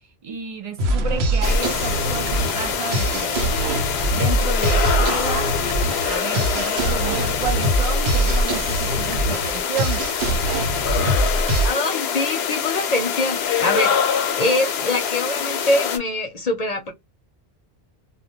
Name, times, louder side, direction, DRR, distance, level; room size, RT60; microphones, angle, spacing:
voice 1, 0.2-5.5 6.0-10.0, right 6 dB, 45° right, 0.5 m, -31 dB
sound 1, 0.8-11.7, right 1 dB, 80° right, 0.9 m, -23 dB
sound 2, 1.4-16.0, left 7 dB, 90° left, 0.8 m, -25 dB
voice 2, 11.6-16.9, left 2 dB, 45° left, 0.6 m, -24 dB
2.2 x 2.2 x 2.8 m
omnidirectional pair, 1.1 m